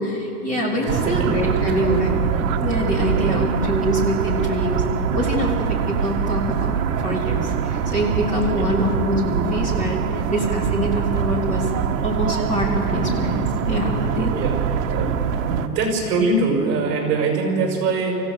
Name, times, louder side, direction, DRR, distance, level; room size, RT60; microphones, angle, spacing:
voice 1, 0.0-2.2 2.6-4.8 5.1-10.0 10.3-11.7 12.0-14.5, equal, 15° left, -3 dB, 3.7 m, -24 dB
voice 2, 0.8-1.3 1.6-1.8 3.2-3.5 8.5-8.7 13.0-13.1 14.3-14.6 14.9-18.1, right 3 dB, 30° right, 1 dB, 5.8 m, -23 dB
sound 1, 0.9-15.7, right 7 dB, 50° right, 1.3 m, -24 dB
25.5 x 16.0 x 6.6 m, 3.0 s
hypercardioid pair, 155°, 49 cm